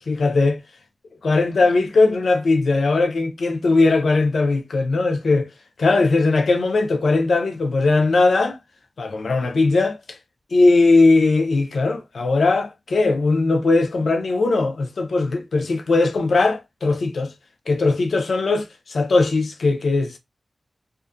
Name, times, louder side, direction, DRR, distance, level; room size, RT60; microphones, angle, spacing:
voice 1, 0.1-0.6 1.2-5.5 5.8-8.6 9.0-10.2 10.5-17.3 17.7-20.2, left 3 dB, 85° left, 0.4 m, -19 dB
2.5 x 2.3 x 2.5 m
wide cardioid pair, 95°, 0 cm